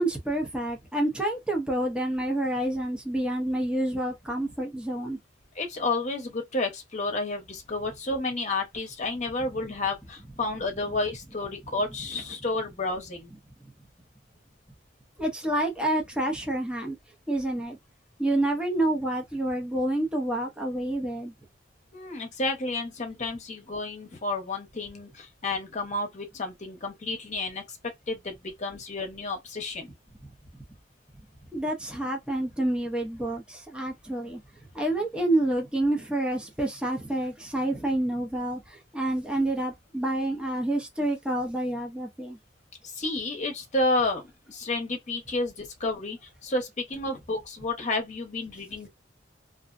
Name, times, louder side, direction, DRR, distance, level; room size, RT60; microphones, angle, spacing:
voice 1, 0.0-5.2 15.2-17.0 17.3-17.8 18.2-21.3 31.5-34.4 34.7-42.4, right 1 dB, 5° right, 0.6 m, -28 dB
voice 2, 5.5-13.3 21.9-27.8 28.1-29.9 42.8-44.2 44.5-48.9, left 2 dB, 40° left, 0.9 m, -31 dB
2.5 x 2.0 x 2.5 m
head